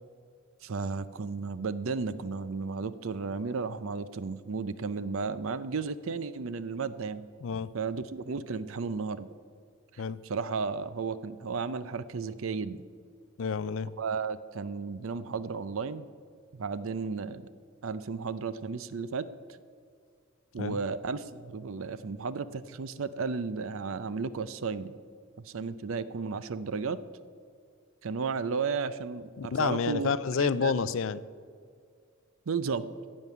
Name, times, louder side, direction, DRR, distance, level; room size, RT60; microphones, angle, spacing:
voice 1, 0.6-7.2 7.7-9.3 9.9-12.9 14.0-16.1 16.5-17.5 17.8-19.3 20.5-24.9 25.4-27.0 28.0-30.1 30.4-30.7 32.5-32.9, right 4 dB, 70° right, 15 dB, 0.6 m, -34 dB
voice 2, 7.4-7.7 10.0-10.2 13.4-13.9 20.6-20.8 29.4-31.2, left 5 dB, 65° left, 16 dB, 0.4 m, -29 dB
15.5 x 5.4 x 9.3 m, 2.2 s
head